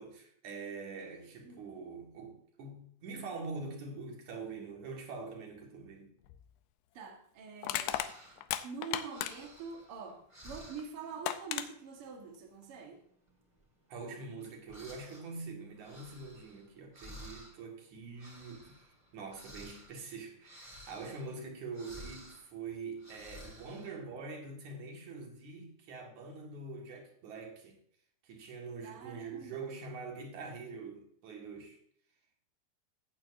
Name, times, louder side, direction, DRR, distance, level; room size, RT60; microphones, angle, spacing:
voice 1, 0.0-6.1 13.9-27.8 28.2-31.8, right 4 dB, 55° right, 2.7 m, -44 dB
Crushing, 6.3-6.4 7.6-9.6 10.8-10.9 11.3-11.7, left 13 dB, 85° left, 2.8 m, -35 dB
voice 2, 6.9-8.1 8.6-13.0 28.8-29.6, right 5 dB, 75° right, 1.3 m, -45 dB
sound 1, 7.9-8.6 8.9-11.1 11.4-11.8 12.0-12.4 12.8-15.3 15.6-24.0, equal, 15° right, 1.4 m, -53 dB
15.0 x 8.7 x 2.6 m
omnidirectional pair, 4.9 m